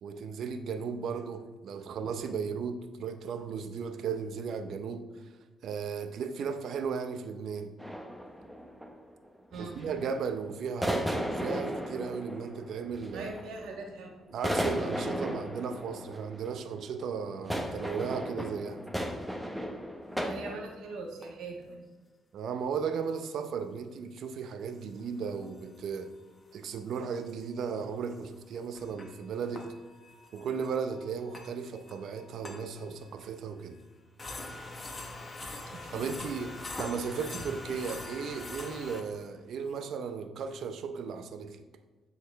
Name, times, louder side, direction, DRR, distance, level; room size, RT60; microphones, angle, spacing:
voice 1, 0.0-5.1 5.6-7.7 9.6-13.3 14.3-18.8 22.3-26.1 26.5-29.7 30.3-33.8 35.9-41.6, right 6 dB, 70° right, 0.6 m, -35 dB
sound 1, 7.8-9.1 9.5-10.1 10.8-13.8 14.3-20.6, equal, 5° right, 0.8 m, -35 dB
voice 2, 13.1-14.1 20.2-21.8 35.7-36.1, right 3 dB, 85° right, 1.4 m, -41 dB
sound 2, 20.4-20.5 21.2-21.3 23.0-23.1 25.0-26.2 26.5-26.7 26.9-27.0 27.3-27.4 28.2-33.4 33.7-33.8 34.2-39.2, left 2 dB, 25° left, 1.0 m, -44 dB
9.3 x 4.0 x 3.5 m
cardioid pair, 90°, 0 cm